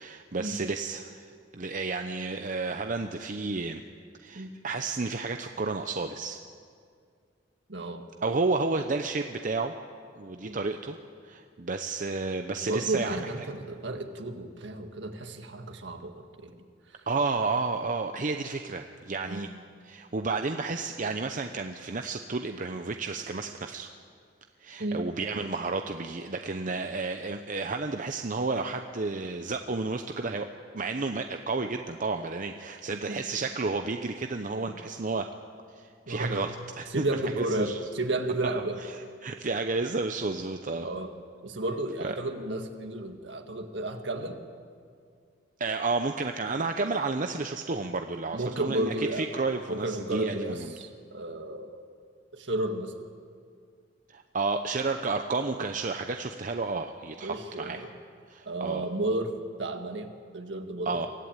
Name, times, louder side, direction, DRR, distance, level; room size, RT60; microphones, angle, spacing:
voice 1, 0.0-3.8 4.2-6.4 8.2-9.7 10.2-11.0 11.2-13.3 17.1-19.5 19.8-23.9 24.6-30.5 30.7-35.3 35.7-37.8 38.8-38.9 39.2-40.9 42.0-42.2 45.6-50.7 54.1-57.9 58.3-58.9 60.9-61.1, right 3 dB, 45° right, 6 dB, 0.7 m, -31 dB
voice 2, 7.7-8.1 10.4-10.6 12.6-16.6 16.9-17.0 19.2-19.5 24.8-25.0 33.1-33.2 36.1-36.4 36.9-38.8 40.8-41.1 41.4-44.4 48.3-51.9 52.3-53.1 57.2-57.9 58.5-61.0, right 2 dB, 65° right, 5 dB, 1.8 m, -33 dB
23.5 x 14.5 x 9.0 m, 2.2 s
head